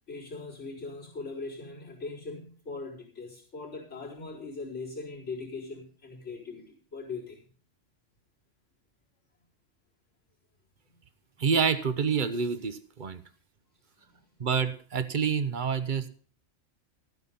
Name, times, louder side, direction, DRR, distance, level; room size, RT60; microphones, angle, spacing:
voice 1, 0.1-7.4 14.0-14.3, left 3 dB, 70° left, -6 dB, 4.7 m, -40 dB
voice 2, 11.4-13.2 14.4-16.1, right 6 dB, 45° right, 13 dB, 1.0 m, -27 dB
13.5 x 9.4 x 5.5 m, 0.43 s
omnidirectional pair, 1.3 m